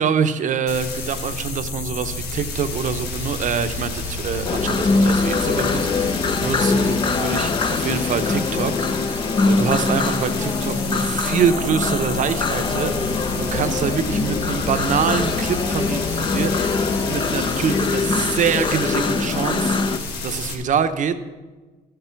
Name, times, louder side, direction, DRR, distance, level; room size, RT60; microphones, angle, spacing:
voice 1, 0.0-8.7 9.1-16.8 17.1-19.8 20.2-21.1, right 7 dB, 50° right, 9 dB, 0.8 m, -25 dB
sound 1, 0.7-20.5, left 3 dB, 90° left, 1.6 m, -30 dB
sound 2, 4.4-20.0, left 3 dB, 30° left, 0.6 m, -23 dB
13.0 x 6.9 x 5.8 m, 1.3 s
cardioid pair, 110°, 17 cm